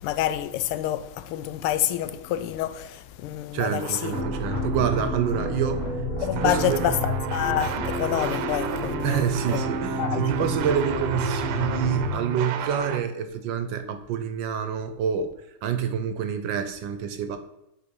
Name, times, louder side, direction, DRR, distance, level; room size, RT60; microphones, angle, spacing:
voice 1, 0.0-4.2 6.2-9.6 10.0-10.3, left 12 dB, 90° left, 1.5 m, -28 dB
voice 2, 3.5-6.0 6.3-6.9 9.0-15.3 15.6-17.4, right 8 dB, 70° right, 1.2 m, -27 dB
sound 1, 3.8-5.8 6.4-13.0, right 9 dB, 90° right, 1.5 m, -33 dB
sound 2, 4.1-10.5, left 1 dB, 70° left, 2.5 m, -36 dB
sound 3, 4.1-12.1, left 2 dB, 30° left, 1.5 m, -31 dB
7.0 x 4.6 x 5.2 m
omnidirectional pair, 2.4 m